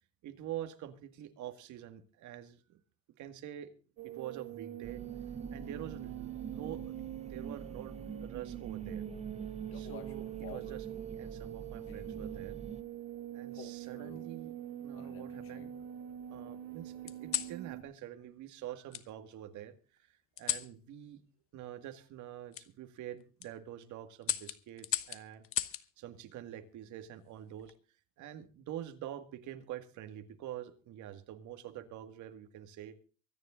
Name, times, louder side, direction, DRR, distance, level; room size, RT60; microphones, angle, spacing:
voice 1, 0.2-2.8 3.2-3.7 4.0-5.0 5.5-7.0 7.3-7.9 8.2-9.0 9.7-12.6 13.3-15.7 16.3-19.7 20.0-21.2 21.5-25.4 26.0-27.7 28.2-32.9, right 11 dB, 60° right, 8 dB, 2.1 m, -46 dB
sound 1, 4.0-17.8, right 11 dB, 85° right, 2.3 m, -44 dB
sound 2, 4.8-12.8, right 6 dB, 20° right, 0.8 m, -46 dB
sound 3, 9.7-10.8 11.9-12.3 13.5-14.3 14.9-15.8 17.1-17.6 18.9-19.1 20.4-20.7 22.5-22.7 23.2-23.5 24.2-25.9 27.4-27.8, left 11 dB, 45° left, 1.0 m, -39 dB
24.0 x 9.9 x 3.8 m, 0.35 s
cardioid pair, 160°, 32 cm